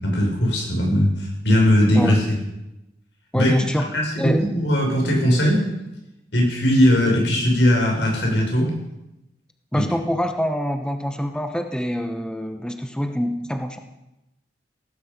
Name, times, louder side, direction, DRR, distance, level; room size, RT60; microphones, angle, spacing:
voice 1, 0.0-2.2 3.3-3.5 3.8-5.7 6.3-8.7 9.7-9.8, equal, 85° left, 0 dB, 5.9 m, -19 dB
voice 2, 1.9-2.3 3.3-3.9 4.2-4.4 9.7-13.8, equal, 5° left, 6 dB, 0.9 m, -25 dB
17.0 x 15.5 x 5.3 m, 0.94 s
head